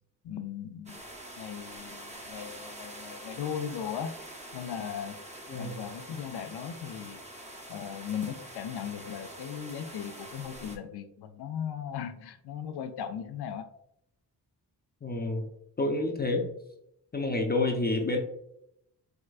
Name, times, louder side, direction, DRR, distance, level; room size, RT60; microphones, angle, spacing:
voice 1, 0.2-1.0 1.4-4.1 4.5-5.2 5.5-7.2 7.7-13.7, left 8 dB, 75° left, 9 dB, 0.5 m, -37 dB
sound 1, 0.9-10.8, right 1 dB, 15° right, 0.7 m, -45 dB
voice 2, 15.0-15.5 15.8-16.5 17.1-18.2, left 2 dB, 25° left, 2 dB, 0.5 m, -28 dB
4.6 x 2.2 x 2.4 m, 0.76 s
cardioid pair, 75°, 40 cm